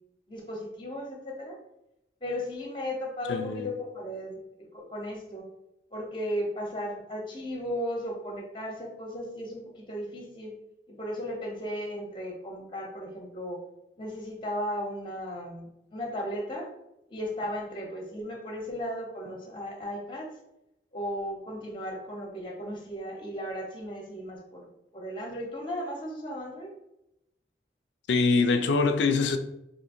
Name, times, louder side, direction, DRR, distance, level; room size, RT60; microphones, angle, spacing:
voice 1, 0.3-1.6 2.2-5.5 5.9-10.5 10.9-13.6 14.0-16.7 17.1-20.3 20.9-24.7 24.9-26.7, equal, 25° left, 0 dB, 0.6 m, -35 dB
voice 2, 3.3-3.7 28.1-29.4, left 4 dB, 80° left, 7 dB, 0.4 m, -24 dB
2.7 x 2.7 x 4.2 m, 0.87 s
head